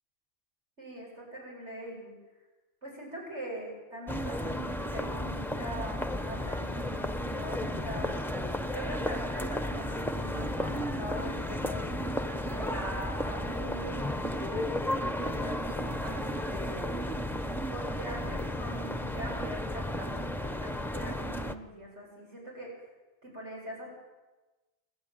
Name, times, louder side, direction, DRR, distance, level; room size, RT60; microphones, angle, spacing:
voice 1, 0.8-2.1 2.8-8.1 8.7-12.0 12.5-14.1 14.5-16.9 17.7-22.7 23.2-23.9, equal, 90° right, -2 dB, 8.3 m, -42 dB
sound 1, 4.1-21.5, left 1 dB, ahead, 0.8 m, -33 dB
28.0 x 11.5 x 9.3 m, 1.2 s
omnidirectional pair, 1.2 m